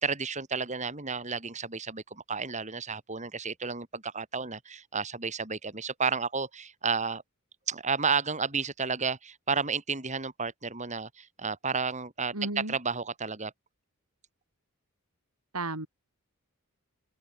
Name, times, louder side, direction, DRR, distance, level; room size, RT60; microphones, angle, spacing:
voice 1, 0.0-7.2 7.7-13.5, right 5 dB, 30° right, 4.7 m, -32 dB
voice 2, 12.3-12.8 15.5-15.9, right 2 dB, 90° right, 5.4 m, -33 dB
open air
head